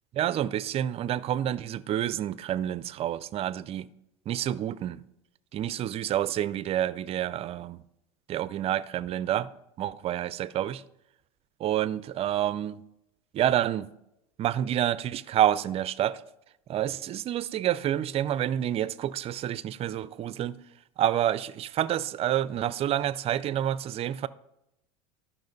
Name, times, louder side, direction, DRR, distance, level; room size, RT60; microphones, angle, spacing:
voice 1, 0.1-3.9 4.3-5.0 5.5-7.8 8.3-9.5 9.8-10.8 11.6-12.8 13.3-13.9 14.4-16.2 16.7-20.6 21.0-24.3, right 11 dB, 35° right, 0.4 m, -28 dB
12.5 x 5.7 x 4.0 m
supercardioid pair, 105°, 17 cm